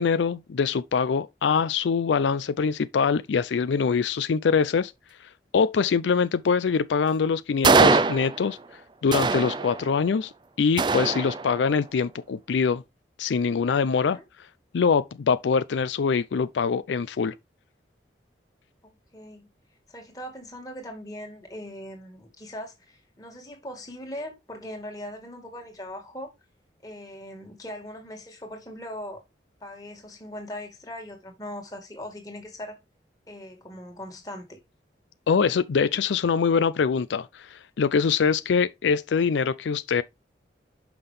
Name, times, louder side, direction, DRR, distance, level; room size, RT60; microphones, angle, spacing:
voice 1, 0.0-4.9 5.5-8.6 9.0-10.3 10.6-12.8 13.2-14.2 14.7-17.3 35.3-40.0, left 5 dB, 85° left, 0.4 m, -24 dB
sound 1, 7.6-8.6 9.1-10.1 10.8-11.8, right 4 dB, 25° right, 0.4 m, -22 dB
voice 2, 18.8-19.5 19.9-26.3 26.8-29.2 29.6-32.8 33.3-34.6, left 1 dB, 20° left, 1.9 m, -40 dB
6.0 x 5.6 x 3.3 m
head